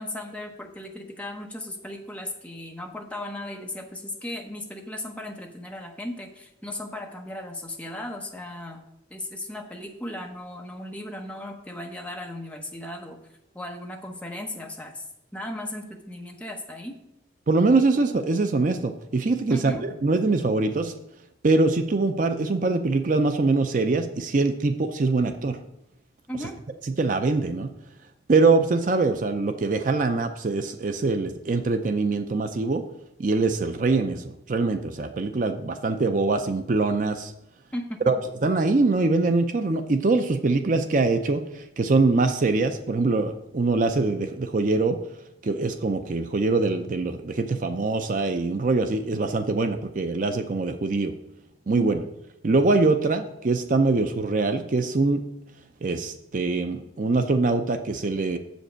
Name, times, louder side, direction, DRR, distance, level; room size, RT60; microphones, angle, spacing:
voice 1, 0.0-8.8 9.1-13.2 13.5-15.0 15.3-17.0 19.5-19.8 26.3-26.6 37.7-38.2 51.7-51.9, left 1 dB, 5° left, 1 dB, 0.9 m, -36 dB
voice 2, 17.5-20.9 21.4-25.6 27.0-27.7 28.3-32.9 33.2-37.3 38.1-38.2 38.4-45.0 45.4-51.1 51.7-52.0 52.4-55.2 55.8-58.4, right 3 dB, 45° right, 8 dB, 0.5 m, -23 dB
7.5 x 5.2 x 6.2 m, 0.82 s
head